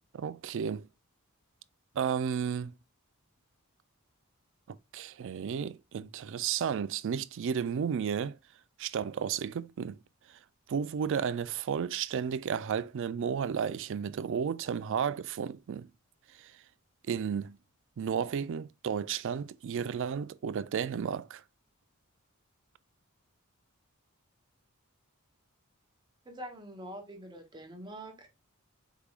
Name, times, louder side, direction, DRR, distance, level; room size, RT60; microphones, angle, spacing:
voice 1, 0.1-0.9 2.0-2.7 4.7-8.4 8.8-10.0 10.7-15.9 16.4-16.5 17.1-17.6 18.0-21.4, right 7 dB, 60° right, 0.3 m, -33 dB
voice 2, 26.2-28.3, right 1 dB, 20° right, 0.9 m, -44 dB
4.6 x 3.5 x 2.4 m
head